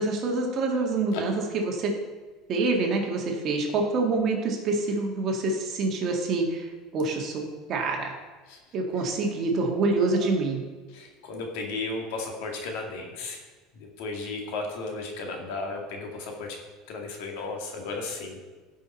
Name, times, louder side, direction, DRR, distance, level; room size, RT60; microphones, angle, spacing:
voice 1, 0.0-1.9 2.5-8.1 8.7-10.6, right 3 dB, 40° right, 1 dB, 1.8 m, -26 dB
voice 2, 10.9-13.4 14.0-16.6 16.9-18.4, left 3 dB, 75° left, 2 dB, 2.1 m, -34 dB
16.0 x 5.5 x 4.3 m, 1.4 s
cardioid pair, 145°, 0 cm